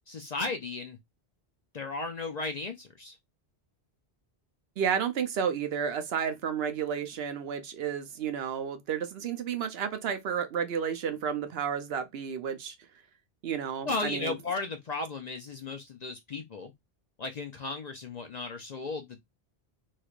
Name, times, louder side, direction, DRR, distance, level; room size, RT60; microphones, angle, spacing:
voice 1, 0.1-1.0 1.7-3.2 13.8-16.7 17.2-19.1, left 3 dB, 50° left, 0.5 m, -35 dB
voice 2, 4.8-12.7 13.4-14.4, right 7 dB, 70° right, 0.8 m, -31 dB
3.2 x 3.2 x 2.4 m
omnidirectional pair, 1.1 m